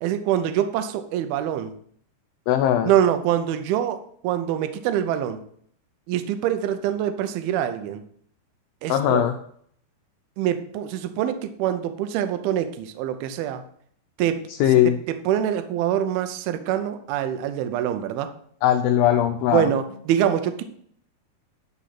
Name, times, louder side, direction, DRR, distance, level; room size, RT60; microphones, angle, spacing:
voice 1, 0.0-1.7 2.8-5.4 6.1-8.0 8.8-9.2 10.4-13.6 14.2-14.4 15.3-18.3 19.5-20.6, right 10 dB, 80° right, 9 dB, 2.5 m, -24 dB
voice 2, 2.5-2.9 8.9-9.3 14.5-15.0 18.6-19.7, left 11 dB, 80° left, 6 dB, 2.1 m, -19 dB
11.0 x 4.1 x 5.8 m, 0.63 s
omnidirectional pair, 4.6 m